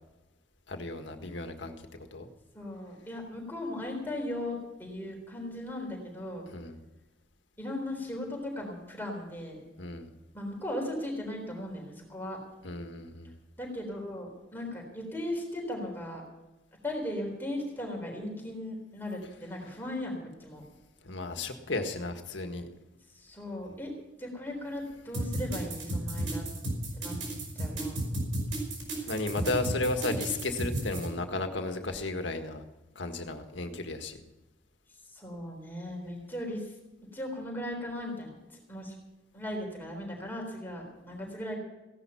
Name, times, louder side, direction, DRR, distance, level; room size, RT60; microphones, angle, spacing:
voice 1, 0.7-1.7 2.1-2.3 6.5-6.8 9.8-10.1 12.6-13.3 21.0-22.7 29.0-32.6 33.0-34.2, left 2 dB, 70° left, 6 dB, 1.8 m, -34 dB
voice 2, 2.5-6.5 7.6-9.6 10.3-12.4 13.6-16.2 16.8-20.6 23.1-23.9 24.2-26.4 26.9-27.2 27.5-28.0 28.9-29.1 35.1-36.7 37.1-39.0 39.3-41.6, left 1 dB, 10° left, 0 dB, 3.9 m, -37 dB
sound 1, 25.1-31.1, right 1 dB, 80° right, 5.1 m, -33 dB
16.5 x 11.0 x 5.8 m, 1.1 s
head